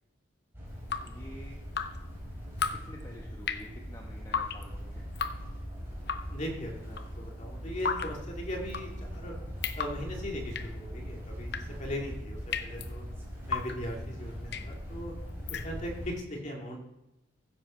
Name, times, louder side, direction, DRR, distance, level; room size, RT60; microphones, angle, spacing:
sound 1, 0.5-16.1, equal, 15° right, 4.1 m, -41 dB
Drip, 0.7-16.1, left 6 dB, 55° left, 0.7 m, -38 dB
voice 1, 1.0-1.6 2.7-5.1 11.9-12.0, equal, 20° left, 0 dB, 1.1 m, -49 dB
voice 2, 6.3-9.4 9.8-13.0 13.5-15.1 15.5-16.8, equal, 35° left, 0 dB, 2.5 m, -39 dB
15.5 x 7.7 x 4.4 m, 0.90 s
head